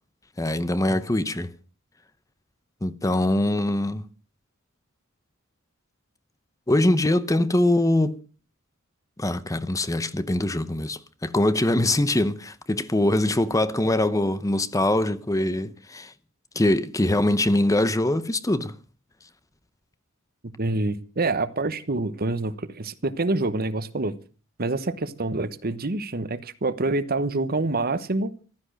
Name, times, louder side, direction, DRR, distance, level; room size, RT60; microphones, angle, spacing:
voice 1, 0.4-1.5 2.8-4.0 6.7-8.2 9.2-16.1 16.5-18.7, left 1 dB, 15° left, 0.8 m, -23 dB
voice 2, 20.6-24.1 24.6-28.3, right 2 dB, 50° right, 1.1 m, -26 dB
15.0 x 12.5 x 6.3 m
head